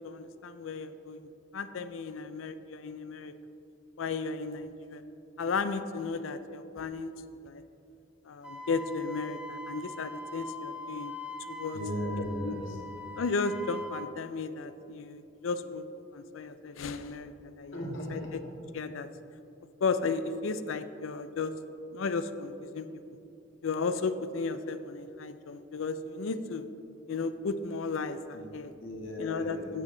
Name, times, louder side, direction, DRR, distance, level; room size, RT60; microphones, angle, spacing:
voice 1, 0.0-3.3 4.0-5.0 5.4-7.1 7.4-7.6 8.3-11.1 11.5-11.8 12.4-12.6 13.2-15.8 16.1-17.8 18.1-18.2 18.7-19.1 19.8-21.5 21.9-22.9 23.6-26.6 27.1-28.7 29.2-29.8, left 4 dB, 90° left, 11 dB, 0.4 m, -34 dB
Wind instrument woodwind instrument, 8.4-14.1, left 1 dB, 5° right, 0.6 m, -42 dB
voice 2, 11.7-12.8 17.7-18.3 28.3-28.5 28.8-29.7, equal, 70° left, -3 dB, 1.8 m, -36 dB
9.0 x 7.6 x 3.8 m, 2.7 s
head